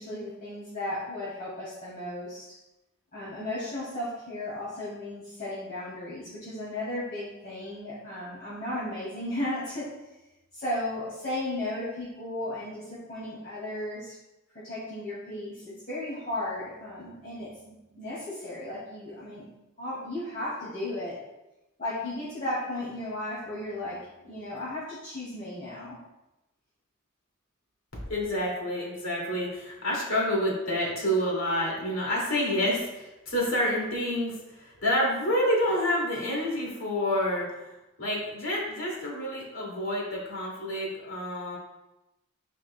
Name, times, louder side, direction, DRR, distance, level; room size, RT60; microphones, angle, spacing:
voice 1, 0.0-2.6 3.1-10.0 10.5-14.2 14.5-19.5 19.8-21.3 21.8-26.0, left 1 dB, 45° left, -10 dB, 2.2 m, -35 dB
voice 2, 28.1-37.7 38.0-41.6, equal, 85° left, -3 dB, 2.4 m, -28 dB
9.9 x 5.1 x 2.2 m, 0.97 s
head